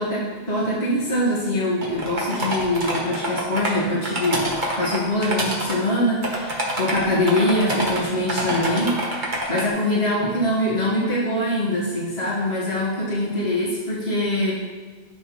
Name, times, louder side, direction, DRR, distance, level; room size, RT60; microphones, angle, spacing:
voice 1, 0.0-14.5, left 1 dB, 70° left, -8 dB, 2.0 m, -23 dB
sound 1, 1.8-3.7 4.0-5.7 6.2-8.0 8.3-9.7, right 1 dB, 45° right, 1.5 m, -26 dB
12.0 x 5.6 x 3.2 m, 1.4 s
omnidirectional pair, 1.1 m